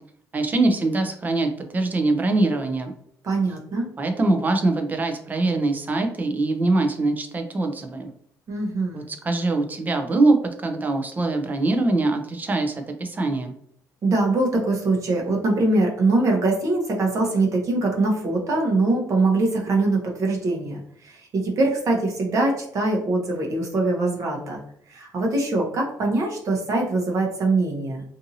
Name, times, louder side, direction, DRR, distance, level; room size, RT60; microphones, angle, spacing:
voice 1, 0.3-2.9 4.0-8.1 8.9-13.5, right 2 dB, 25° right, 5 dB, 0.5 m, -23 dB
voice 2, 3.2-3.9 8.5-9.1 14.0-24.6 24.9-28.0, right 2 dB, 50° right, 0 dB, 0.8 m, -23 dB
2.6 x 2.6 x 2.7 m, 0.66 s
cardioid pair, 125°, 7 cm